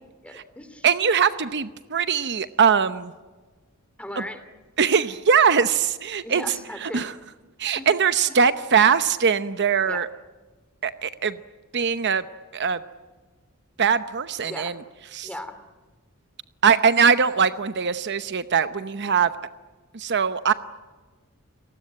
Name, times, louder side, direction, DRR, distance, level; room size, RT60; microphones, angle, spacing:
voice 1, 0.2-0.9 4.0-4.4 6.2-7.1 7.7-7.9 8.3-8.4 9.8-10.1 14.4-14.8 15.2-15.6, left 1 dB, 5° left, 10 dB, 2.8 m, -37 dB
voice 2, 0.8-3.1 4.2-4.3 4.8-6.4 6.8-7.1 7.6-10.1 10.8-11.4 11.7-12.2 12.5-12.8 13.8-14.7 15.1-15.3 16.6-19.3 19.9-20.5, right 6 dB, 55° right, 12 dB, 0.8 m, -21 dB
29.5 x 19.5 x 8.8 m, 1.3 s
head